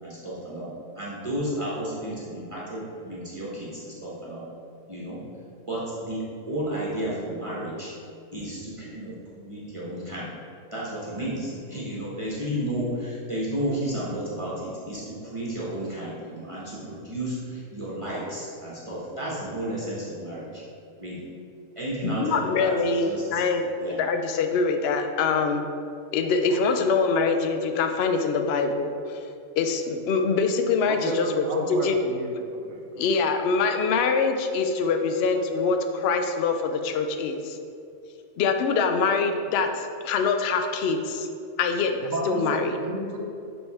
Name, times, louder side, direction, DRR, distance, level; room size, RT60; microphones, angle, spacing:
voice 1, 0.0-4.5 4.9-5.2 5.7-7.9 8.3-10.3 10.7-20.6 21.0-21.2 21.7-23.4 23.8-24.0, right 1 dB, 25° right, -7 dB, 1.1 m, -32 dB
voice 2, 22.0-25.7 26.1-29.2 29.6-32.0 33.0-37.6 38.4-41.3 41.6-42.8, left 4 dB, 65° left, 6 dB, 0.7 m, -24 dB
voice 3, 26.5-26.9 30.9-33.2 42.0-43.2, right 2 dB, 80° right, 1 dB, 1.2 m, -33 dB
6.9 x 3.7 x 4.2 m, 2.5 s
omnidirectional pair, 1.4 m